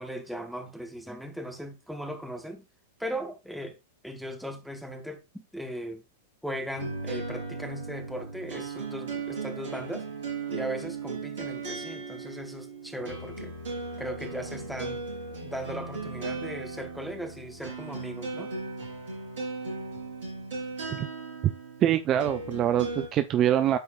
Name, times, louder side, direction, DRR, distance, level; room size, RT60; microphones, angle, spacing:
voice 1, 0.0-2.6 3.0-3.8 4.0-6.0 6.4-10.1 10.5-13.5 14.0-15.0 15.4-18.5, equal, ahead, 1.5 m, -38 dB
sound 1, 6.8-23.1, right 3 dB, 60° right, 4.3 m, -37 dB
voice 2, 21.8-23.8, right 11 dB, 30° right, 0.5 m, -24 dB
12.5 x 4.7 x 2.5 m
figure-of-eight pair, 95°, 0 cm